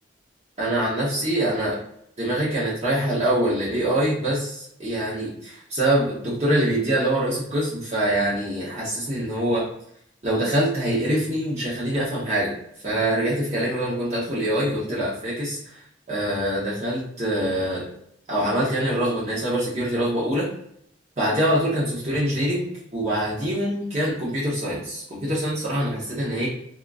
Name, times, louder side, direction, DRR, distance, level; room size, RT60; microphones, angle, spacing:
voice 1, 0.6-1.8 2.2-9.7 10.2-12.5 12.8-15.8 16.1-17.9 18.3-20.5 21.2-26.5, right 1 dB, 35° right, -8 dB, 0.7 m, -24 dB
2.8 x 2.4 x 2.3 m, 0.71 s
head